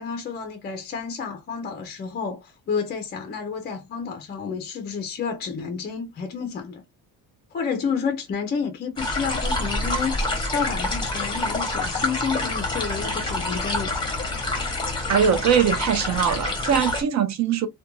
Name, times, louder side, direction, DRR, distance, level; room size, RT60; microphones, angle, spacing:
voice 1, 0.0-6.8 7.5-13.9, left 6 dB, 30° left, 0.4 m, -30 dB
sound 1, 9.0-17.0, left 2 dB, 15° left, 0.8 m, -27 dB
voice 2, 15.1-17.7, right 8 dB, 50° right, 0.5 m, -21 dB
2.3 x 2.2 x 2.9 m
cardioid pair, 160°, 36 cm